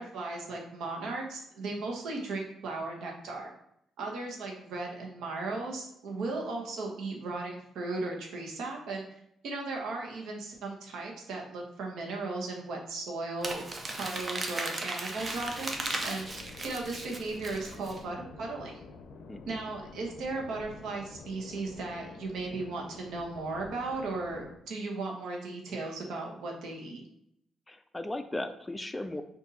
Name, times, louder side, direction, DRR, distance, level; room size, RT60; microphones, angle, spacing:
voice 1, 0.0-3.5 4.0-9.0 9.4-16.3 16.6-18.8 19.5-27.0, right 3 dB, 80° right, 0 dB, 1.0 m, -36 dB
Crumpling crinkling, 13.4-18.0, right 2 dB, 30° right, 0.6 m, -36 dB
sound 1, 15.2-24.6, left 4 dB, 75° left, 0.5 m, -49 dB
voice 2, 19.3-19.6 27.7-29.2, left 1 dB, 15° left, 8 dB, 0.3 m, -37 dB
4.0 x 2.6 x 4.0 m, 0.75 s
cardioid pair, 90°, 0 cm